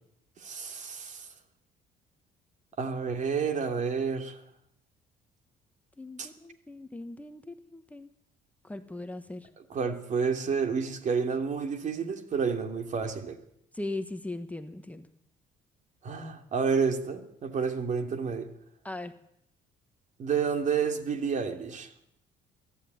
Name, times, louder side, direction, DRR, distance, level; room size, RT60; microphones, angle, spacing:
voice 1, 0.4-1.3 2.8-4.4 6.2-6.3 9.6-13.4 16.0-18.5 20.2-21.9, right 6 dB, 45° right, 7 dB, 2.9 m, -30 dB
voice 2, 6.0-8.1 8.6-9.5 13.7-15.1 18.8-19.1, left 2 dB, 10° left, 8 dB, 1.3 m, -39 dB
24.5 x 13.0 x 9.5 m, 0.76 s
cardioid pair, 110°, 17 cm